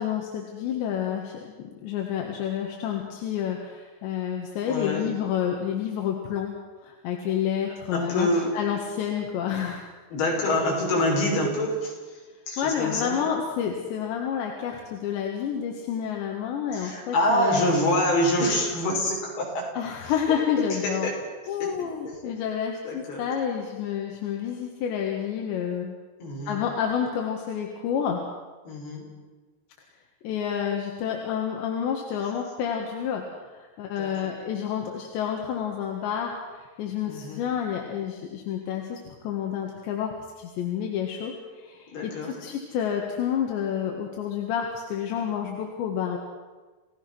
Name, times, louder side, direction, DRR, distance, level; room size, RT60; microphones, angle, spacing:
voice 1, 0.0-6.5 6.8-9.8 12.6-17.7 19.8-21.1 21.5-26.0 26.5-28.2 30.2-46.2, left 8 dB, 85° left, 1 dB, 4.1 m, -29 dB
voice 2, 4.7-5.1 7.9-8.5 10.1-11.9 12.5-13.2 16.7-19.7 20.8-21.1 21.6-21.7 22.1-22.2 22.9-23.2 26.2-26.6 28.7-29.1 34.0-34.3 37.0-37.4 41.9-42.3, left 1 dB, 65° left, -2 dB, 7.7 m, -26 dB
30.0 x 17.5 x 6.2 m, 1.3 s
omnidirectional pair, 5.0 m